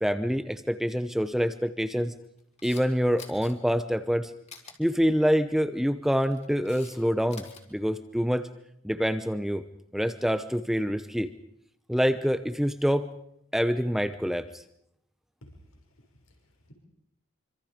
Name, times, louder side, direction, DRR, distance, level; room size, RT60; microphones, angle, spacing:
voice 1, 0.0-2.1 2.6-4.3 4.8-7.4 7.7-8.5 8.8-9.6 9.9-11.3 11.9-13.1 13.5-14.6, equal, ahead, 10 dB, 0.8 m, -26 dB
Camera, 2.4-2.8 3.2-3.5 4.5-4.7 6.0-7.0 7.2-7.6, left 6 dB, 30° left, 3.2 m, -47 dB
voice 2, 15.4-16.7, equal, 85° left, 2 dB, 6.2 m, -55 dB
26.0 x 25.5 x 5.2 m, 0.73 s
head